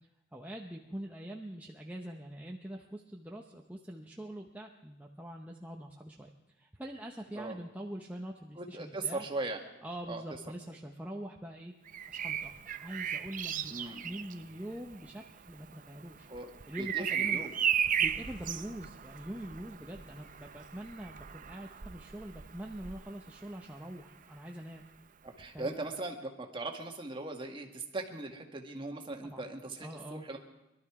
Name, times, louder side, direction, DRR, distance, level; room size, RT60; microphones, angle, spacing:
voice 1, 0.3-9.3 9.8-11.8 12.0-16.3 16.7-17.4 17.8-24.8 25.5-25.7 29.2-29.5 29.8-30.3, right 1 dB, 10° right, 0 dB, 0.8 m, -44 dB
voice 2, 8.6-9.6 10.1-10.2 13.7-14.0 16.3-16.5 16.8-17.5 25.2-30.4, right 2 dB, 25° right, 3 dB, 1.7 m, -39 dB
Bird vocalization bird call bird song, 11.9-23.7 25.4-25.6, right 8 dB, 45° right, 0.6 m, -36 dB
22.0 x 12.5 x 4.8 m, 0.97 s
head